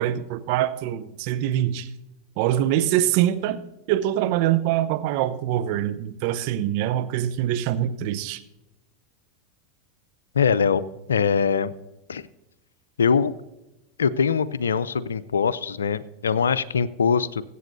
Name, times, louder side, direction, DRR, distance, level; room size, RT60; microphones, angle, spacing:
voice 1, 0.0-1.9 2.4-3.6 3.9-8.4, right 12 dB, 55° right, 10 dB, 0.8 m, -24 dB
voice 2, 10.3-10.8 11.1-11.7 12.1-12.2 13.0-13.3 14.0-17.4, left 6 dB, 80° left, 17 dB, 0.5 m, -22 dB
22.0 x 8.4 x 2.7 m, 0.98 s
hypercardioid pair, 90°, 0 cm